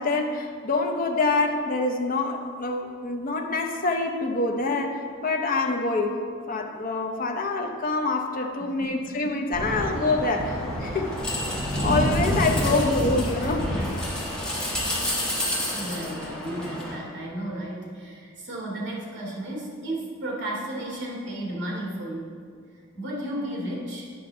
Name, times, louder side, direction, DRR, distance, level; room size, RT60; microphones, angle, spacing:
voice 1, 0.0-6.1 6.5-11.2 11.8-13.7, left 3 dB, 45° left, 3 dB, 0.6 m, -26 dB
voice 2, 8.6-9.3 12.5-12.9 13.3-13.9 15.7-22.3 22.9-24.1, right 1 dB, 60° right, -4 dB, 2.0 m, -34 dB
sound 1, 9.5-17.0, equal, 5° left, 1.4 m, -28 dB
9.4 x 5.7 x 3.8 m, 2.1 s
head